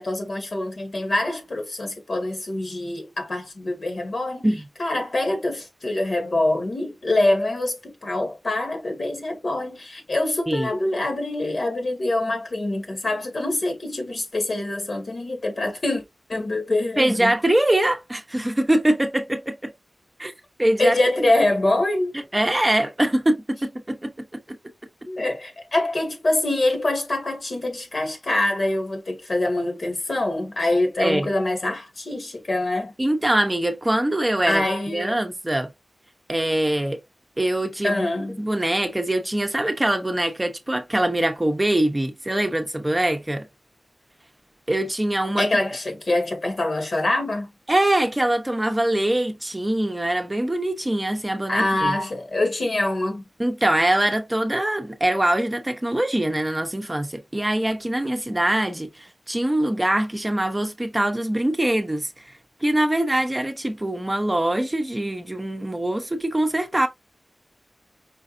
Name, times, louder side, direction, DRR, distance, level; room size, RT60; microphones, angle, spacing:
voice 1, 0.0-4.5 4.8-16.0 16.3-17.3 20.8-22.2 25.0-32.9 34.5-35.1 37.8-38.4 45.4-47.5 51.5-53.2, left 2 dB, 60° left, 2.1 m, -24 dB
voice 2, 17.0-19.7 20.2-20.3 20.6-21.0 21.2-21.3 22.1-24.6 31.0-31.3 33.0-35.7 36.3-37.0 37.4-38.0 38.4-43.5 44.7-45.5 47.7-52.0 53.4-62.3 62.6-66.9, right 1 dB, 20° right, 0.8 m, -23 dB
5.2 x 3.8 x 2.6 m
wide cardioid pair, 70°, 0 cm